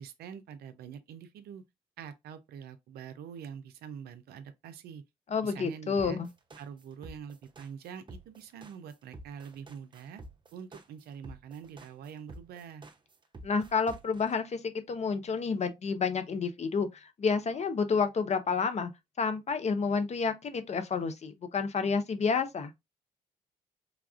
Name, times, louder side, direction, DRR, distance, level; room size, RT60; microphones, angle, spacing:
voice 1, 0.0-1.6 2.0-5.0 5.4-6.2 6.6-10.2 10.5-12.8, right 7 dB, 70° right, 0.5 m, -45 dB
voice 2, 5.3-6.3 13.4-18.9 19.2-22.7, left 5 dB, 40° left, 0.6 m, -30 dB
sound 1, 6.0-14.4, right 1 dB, 30° right, 0.6 m, -49 dB
3.3 x 2.4 x 2.3 m
hypercardioid pair, 50°, 17 cm